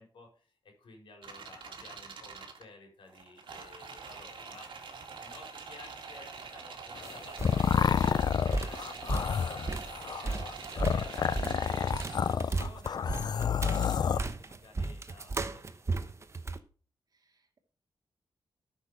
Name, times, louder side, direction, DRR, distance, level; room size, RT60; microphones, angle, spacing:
voice 1, 0.0-4.7 5.2-16.2, left 3 dB, 85° left, 2 dB, 4.6 m, -54 dB
sound 1, 1.2-2.6 3.1-12.3 13.7-14.0, right 5 dB, 70° right, 2.2 m, -45 dB
sound 2, 7.0-14.2, left 7 dB, 55° left, 0.5 m, -29 dB
sound 3, 7.0-7.1 7.4-16.6, right 3 dB, 35° right, 1.0 m, -35 dB
voice 2, 17.1-17.6, right 3 dB, 50° right, 4 dB, 2.3 m, -54 dB
13.0 x 6.4 x 4.9 m, 0.39 s
wide cardioid pair, 100°, 9 cm